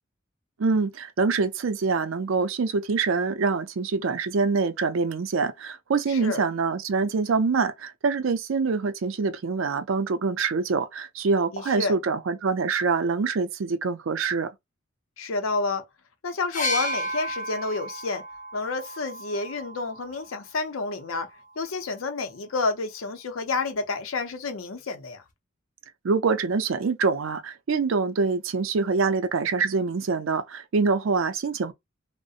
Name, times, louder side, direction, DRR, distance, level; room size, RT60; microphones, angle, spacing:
voice 1, 0.6-14.5 26.0-31.7, right 4 dB, 75° right, 0.5 m, -25 dB
voice 2, 6.1-6.4 11.5-11.9 15.2-15.8 16.2-18.2 18.5-21.3 21.6-25.2, left 3 dB, 85° left, 0.6 m, -29 dB
sound 1, 16.5-20.3 21.4-21.5, left 1 dB, 40° left, 0.6 m, -32 dB
2.7 x 2.1 x 2.4 m
head